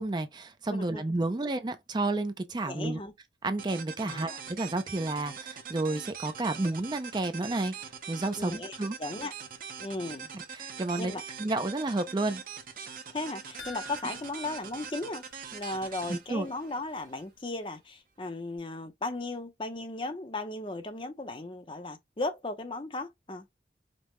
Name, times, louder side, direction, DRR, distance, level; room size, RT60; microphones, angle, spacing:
voice 1, 0.0-3.0 3.4-9.0 10.5-11.1 11.4-12.4 16.1-16.5, right 2 dB, 25° right, 0.4 m, -31 dB
voice 2, 0.7-1.0 2.6-3.1 4.0-4.4 8.4-9.3 9.8-10.3 11.0-11.2 13.1-15.3 15.5-23.5, left 2 dB, 30° left, 0.6 m, -36 dB
sound 1, 3.6-17.2, right 6 dB, 50° right, 0.8 m, -43 dB
sound 2, 13.6-16.1 16.4-16.5 16.9-17.0, left 2 dB, 85° left, 1.5 m, -49 dB
5.2 x 2.1 x 3.1 m
head